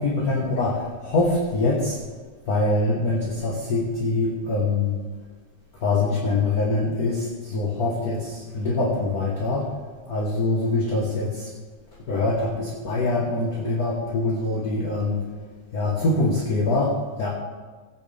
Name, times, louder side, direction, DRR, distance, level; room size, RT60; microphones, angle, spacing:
voice 1, 0.0-2.0 2.5-5.0 5.8-9.7 10.1-11.5 12.1-15.2 15.7-17.3, left 2 dB, 45° left, -4 dB, 1.2 m, -24 dB
17.0 x 9.3 x 3.5 m, 1.4 s
omnidirectional pair, 3.7 m